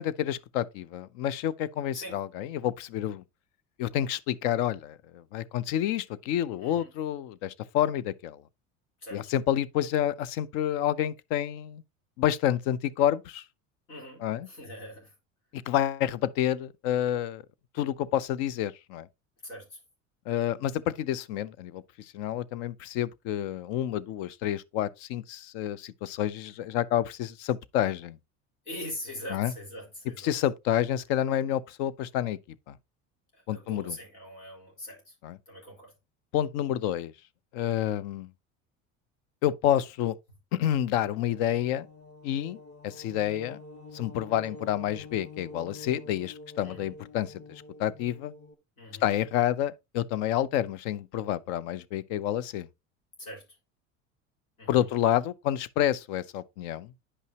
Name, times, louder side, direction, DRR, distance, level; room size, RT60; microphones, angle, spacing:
voice 1, 0.0-3.2 3.8-8.4 9.1-11.8 12.2-13.4 14.2-14.5 15.7-17.4 17.7-19.1 20.3-21.8 22.1-28.2 29.3-29.5 30.2-32.4 32.7-32.8 33.5-34.0 35.2-35.4 36.3-37.1 37.5-38.3 39.4-40.1 40.5-41.9 42.2-42.6 42.8-43.6 43.9-48.3 49.0-52.7 54.7-56.9, left 11 dB, 65° left, 0.7 m, -29 dB
voice 2, 6.6-6.9 9.0-9.3 13.9-15.1 19.4-19.8 28.7-30.3 33.3-35.1 35.5-35.9 46.6-46.9 48.8-49.0 53.2-53.4 54.6-54.8, left 1 dB, 85° left, 4.0 m, -42 dB
sound 1, 40.6-48.5, left 3 dB, 35° left, 1.5 m, -47 dB
9.7 x 5.5 x 2.9 m
hypercardioid pair, 75°, 40 cm